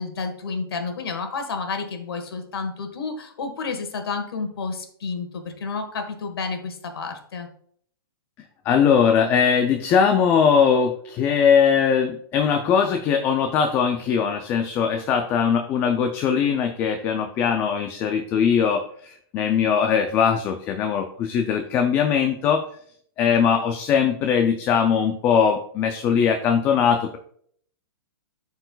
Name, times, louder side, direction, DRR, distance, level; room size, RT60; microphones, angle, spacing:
voice 1, 0.0-7.5, left 4 dB, 85° left, 6 dB, 1.5 m, -30 dB
voice 2, 8.7-22.6 23.2-27.2, left 7 dB, 15° left, 5 dB, 0.3 m, -20 dB
11.5 x 4.5 x 2.3 m, 0.62 s
hypercardioid pair, 160°, 12 cm